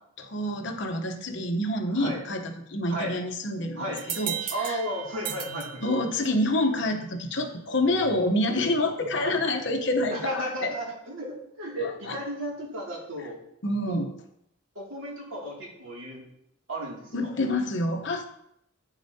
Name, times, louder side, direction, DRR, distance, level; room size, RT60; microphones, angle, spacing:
voice 1, 0.2-4.8 5.8-10.7 11.8-12.2 13.6-14.1 17.1-18.2, left 1 dB, 60° left, 5 dB, 0.9 m, -27 dB
sound 1, 4.0-6.5, right 9 dB, 40° right, 0.5 m, -36 dB
voice 2, 4.5-5.8 9.2-9.4 10.1-13.4 13.9-14.0 14.7-16.2 16.7-17.3, right 1 dB, 80° right, -4 dB, 2.5 m, -34 dB
9.0 x 7.0 x 2.8 m, 0.76 s
head